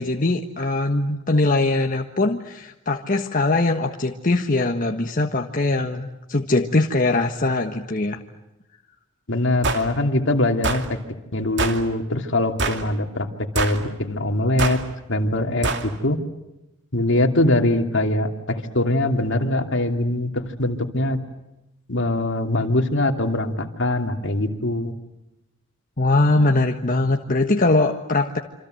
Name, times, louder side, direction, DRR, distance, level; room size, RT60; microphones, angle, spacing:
voice 1, 0.0-8.2 26.0-28.4, left 2 dB, 45° left, 3 dB, 1.5 m, -21 dB
voice 2, 9.3-11.0 11.3-13.3 13.5-14.8 15.1-16.2 16.9-21.2 21.9-24.9, left 1 dB, 65° left, 5 dB, 2.8 m, -22 dB
sound 1, 9.6-9.9 10.6-10.9 11.6-11.8 12.6-12.9 13.6-13.8 14.6-14.8 15.6-15.9, right 3 dB, 60° right, 2.7 m, -24 dB
27.5 x 26.5 x 7.9 m, 0.93 s
head